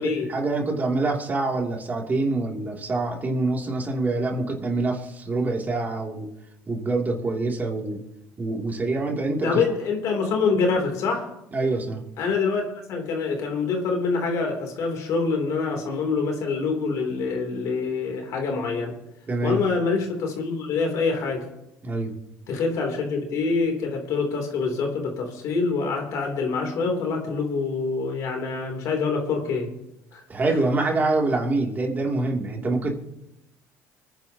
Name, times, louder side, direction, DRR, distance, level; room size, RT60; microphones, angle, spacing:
voice 1, 0.0-6.3 6.7-8.0 8.4-9.6 11.5-12.0 19.3-19.6 21.8-22.1 30.3-32.9, right 2 dB, 30° right, 0 dB, 2.8 m, -25 dB
voice 2, 9.4-11.3 12.2-12.6 12.9-19.0 19.4-21.5 22.5-29.7 30.1-30.2 30.5-30.6, left 4 dB, 65° left, 2 dB, 3.2 m, -25 dB
25.0 x 10.0 x 2.9 m, 0.88 s
supercardioid pair, 85°, 6 cm